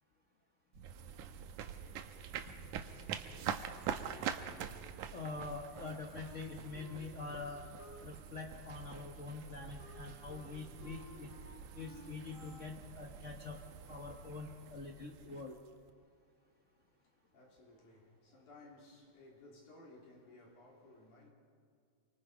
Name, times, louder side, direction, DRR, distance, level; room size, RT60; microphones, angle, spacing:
sound 1, 0.7-15.9, right 8 dB, 90° right, 2.4 m, -45 dB
voice 1, 5.1-7.7 8.0-11.3 11.7-13.6 13.9-15.6, left 4 dB, 70° left, 0.7 m, -45 dB
Wind instrument woodwind instrument, 5.2-8.1 8.3-12.8, left 2 dB, 50° left, 4.5 m, -58 dB
voice 2, 17.0-21.3, left 2 dB, 85° left, 5.0 m, -59 dB
28.0 x 24.5 x 5.0 m
omnidirectional pair, 3.4 m